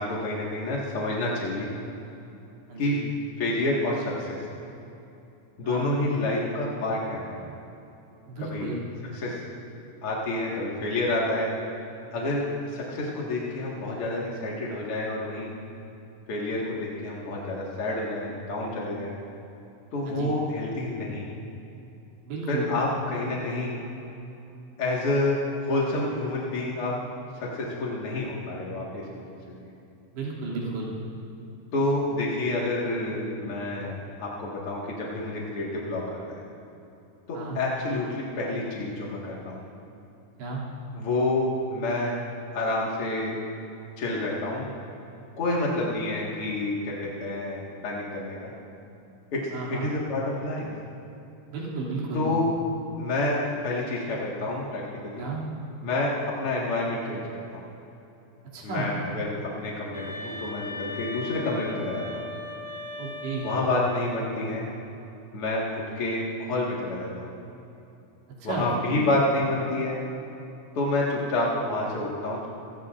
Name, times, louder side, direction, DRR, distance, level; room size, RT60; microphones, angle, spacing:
voice 1, 0.0-1.7 2.8-3.0 3.4-4.4 5.6-7.4 8.4-8.7 9.1-9.4 10.0-11.5 12.1-15.5 16.3-19.1 19.9-21.3 22.5-23.8 24.8-26.9 27.3-29.2 29.5-29.7 31.7-36.4 37.3-39.7 40.9-42.2 42.5-43.4 44.0-44.7 45.4-48.5 49.3-50.7 52.1-52.5 53.0-55.3 55.8-57.2 57.5-57.6 58.6-62.2 63.4-64.6 65.3-65.6 65.9-67.3 68.4-70.0 70.7-72.5, left 2 dB, 55° left, -4 dB, 1.6 m, -28 dB
voice 2, 8.3-8.8 20.1-20.3 22.3-22.7 30.1-31.0 37.3-37.6 40.4-40.6 49.5-49.9 51.5-52.3 55.2-55.4 58.5-58.9 63.0-63.5 68.4-69.0, right 3 dB, 70° right, -5 dB, 4.8 m, -33 dB
sound 1, 59.9-64.1, left 2 dB, 5° right, 1.2 m, -38 dB
27.0 x 16.5 x 2.5 m, 2.8 s
omnidirectional pair, 5.1 m